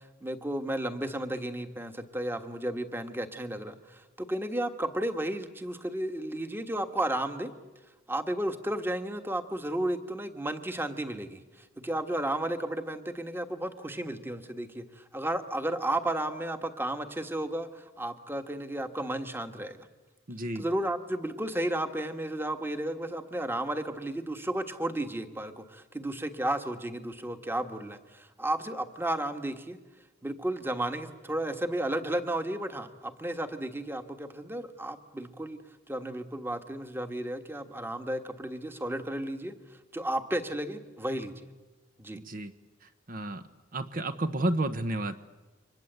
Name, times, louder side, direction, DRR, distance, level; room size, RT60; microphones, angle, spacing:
voice 1, 0.0-7.5 8.1-11.4 11.8-19.9 20.5-29.8 30.2-35.6 35.9-39.5 39.9-41.5 42.0-42.2, right 1 dB, 10° right, 7 dB, 1.5 m, -33 dB
voice 2, 20.3-20.6 42.1-42.5 42.8-43.4 43.7-45.2, right 1 dB, 45° right, 9 dB, 1.1 m, -31 dB
29.5 x 25.0 x 8.1 m, 1.2 s
head